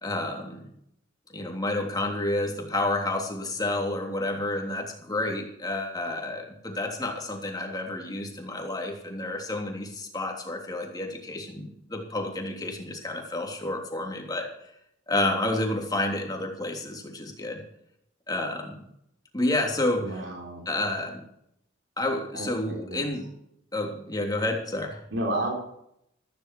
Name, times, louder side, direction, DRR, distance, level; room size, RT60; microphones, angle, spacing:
voice 1, 0.0-0.7 1.3-14.7 15.1-17.6 18.3-18.9 19.3-20.2 20.6-21.3 22.0-23.3 23.7-25.0, left 2 dB, 20° left, 1 dB, 3.1 m, -30 dB
voice 2, 20.0-20.7 22.3-23.1 25.1-25.5, right 1 dB, 75° right, 0 dB, 3.7 m, -31 dB
14.5 x 14.0 x 4.7 m, 0.76 s
head